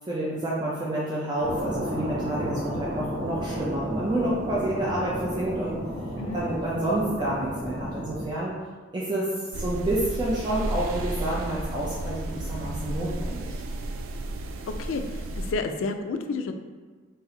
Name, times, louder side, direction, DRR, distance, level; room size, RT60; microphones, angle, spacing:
voice 1, 0.0-5.8 6.3-8.6 8.9-13.6, right 1 dB, 20° right, -7 dB, 0.5 m, -29 dB
sound 1, 1.4-8.3, equal, 45° right, 0.9 m, -33 dB
sound 2, 9.5-15.5, right 1 dB, 80° right, 0.4 m, -33 dB
voice 2, 15.4-16.5, left 3 dB, 80° left, 6 dB, 0.4 m, -30 dB
4.1 x 2.6 x 3.9 m, 1.4 s
head